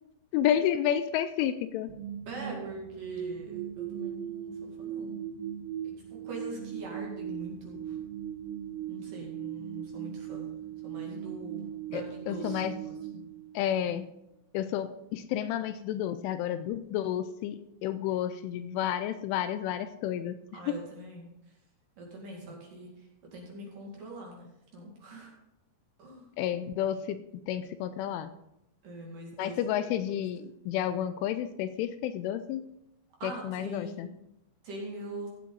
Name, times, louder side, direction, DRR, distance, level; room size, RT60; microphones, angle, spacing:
voice 1, 0.3-1.9 11.9-12.8 13.5-14.1 14.5-20.4 20.7-20.8 26.4-28.3 29.4-32.6 33.2-34.1, left 10 dB, 85° left, 12 dB, 3.0 m, -31 dB
sound 1, 1.9-14.0, right 9 dB, 80° right, 2.6 m, -39 dB
voice 2, 2.3-4.5 4.8-5.2 6.1-8.0 8.9-10.5 10.8-11.6 11.9-13.2 18.1-18.2 20.5-21.3 22.0-23.1 23.3-25.3 26.0-26.3 28.8-29.9 33.2-34.1 34.6-35.3, right 1 dB, 50° right, -2 dB, 3.3 m, -43 dB
16.5 x 7.5 x 4.0 m, 0.85 s
omnidirectional pair, 5.7 m